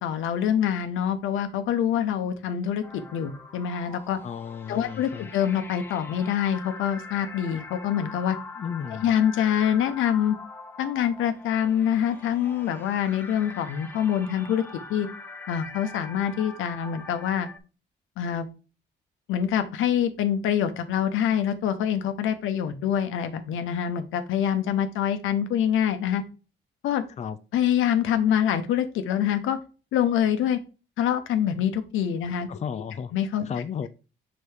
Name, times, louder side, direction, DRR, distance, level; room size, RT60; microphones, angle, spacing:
voice 1, 0.0-4.2 4.7-8.4 9.0-10.4 10.8-14.6 14.9-15.1 15.5-17.5 18.2-18.5 19.3-26.2 26.8-27.0 27.5-29.6 29.9-30.6 31.0-32.5 33.1-33.5, left 9 dB, 85° left, 0.8 m, -25 dB
sound 1, 2.8-17.6, left 3 dB, 10° left, 0.8 m, -43 dB
voice 2, 4.2-5.3 8.6-9.1 27.2-27.4 32.2-33.1 33.5-33.9, left 7 dB, 35° left, 0.4 m, -34 dB
4.7 x 4.1 x 4.8 m
cardioid pair, 90°, 20 cm